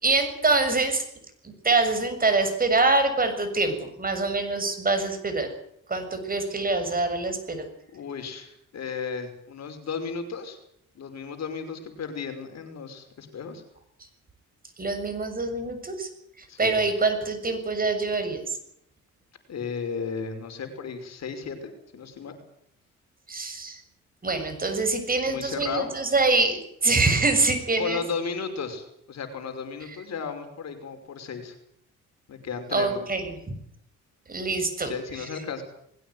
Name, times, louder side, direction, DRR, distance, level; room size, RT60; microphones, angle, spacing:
voice 1, 0.0-1.0 1.6-5.5 5.9-7.7 14.8-16.1 16.6-18.6 23.3-23.8 24.2-28.0 32.7-33.4 34.3-34.9, right 3 dB, 30° right, 7 dB, 6.9 m, -25 dB
voice 2, 7.9-10.6 11.0-13.6 16.5-16.8 19.5-22.3 25.3-25.9 27.8-31.6 32.3-33.1 34.8-35.6, left 5 dB, 60° left, 7 dB, 5.7 m, -34 dB
21.0 x 17.0 x 9.5 m, 0.72 s
cardioid pair, 90°, 30 cm